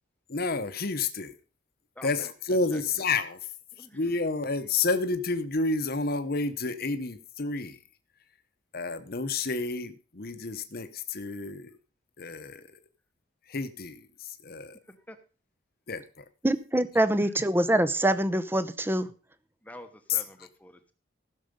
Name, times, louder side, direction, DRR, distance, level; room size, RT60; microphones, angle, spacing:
voice 1, 0.3-1.3 2.0-3.4 3.9-7.8 8.7-11.7 12.2-12.6 13.5-14.0 14.4-14.8 15.9-16.2 20.1-20.2, left 3 dB, 50° left, 0.9 m, -30 dB
voice 2, 2.0-2.3 2.7-2.8 3.7-4.0 14.9-15.2 17.2-17.3 19.6-20.9, left 1 dB, 10° left, 0.9 m, -48 dB
voice 3, 16.4-19.1, right 1 dB, 10° right, 0.6 m, -24 dB
15.5 x 6.5 x 5.2 m
head